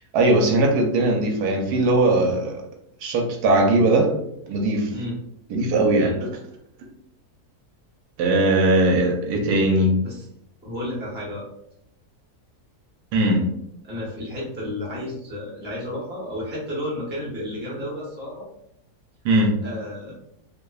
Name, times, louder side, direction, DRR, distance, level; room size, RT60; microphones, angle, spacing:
voice 1, 0.1-2.6 3.0-4.1 4.5-4.9 5.5-6.3 8.2-10.0 13.1-13.4 19.2-19.6, right 2 dB, 80° right, 1 dB, 1.1 m, -19 dB
voice 2, 10.6-11.4 13.8-18.5 19.6-20.1, left 1 dB, 10° right, -6 dB, 0.6 m, -32 dB
2.9 x 2.1 x 2.2 m, 0.75 s
omnidirectional pair, 1.7 m